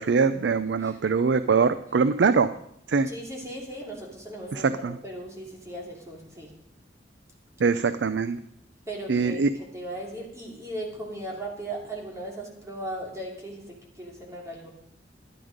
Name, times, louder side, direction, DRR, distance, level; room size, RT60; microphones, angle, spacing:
voice 1, 0.0-2.5 2.9-3.1 4.5-5.0 7.6-8.4 9.1-9.5, right 5 dB, 75° right, 13 dB, 0.4 m, -23 dB
voice 2, 3.1-6.5 8.9-9.4 9.7-14.7, right 1 dB, 15° right, -2 dB, 2.7 m, -37 dB
12.5 x 10.5 x 5.1 m, 0.74 s
head